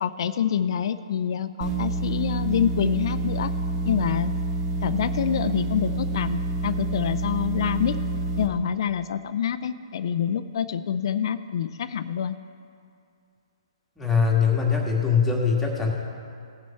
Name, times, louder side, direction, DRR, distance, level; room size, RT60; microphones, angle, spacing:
voice 1, 0.0-3.5 3.8-4.3 4.8-8.0 8.4-12.4, left 8 dB, 55° left, 11 dB, 0.5 m, -26 dB
sound 1, 1.6-8.5, right 2 dB, 25° right, 1.4 m, -28 dB
voice 2, 14.0-15.9, left 6 dB, 5° left, -3 dB, 1.9 m, -22 dB
17.5 x 6.3 x 4.3 m, 2.5 s
hypercardioid pair, 140°, 3 cm